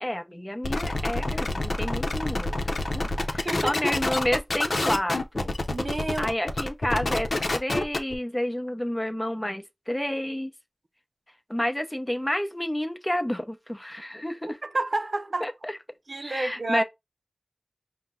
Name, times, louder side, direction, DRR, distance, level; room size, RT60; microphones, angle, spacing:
voice 1, 0.0-5.5 6.2-10.5 11.5-14.6 15.4-15.8 16.2-16.8, left 1 dB, 15° left, 0.7 m, -30 dB
sound 1, 0.6-8.1, left 2 dB, 85° left, 0.6 m, -27 dB
voice 2, 3.4-3.8 5.7-6.3 14.6-15.5 16.1-16.8, right 2 dB, 70° right, 0.5 m, -29 dB
5.6 x 2.1 x 3.6 m
wide cardioid pair, 60°, 0 cm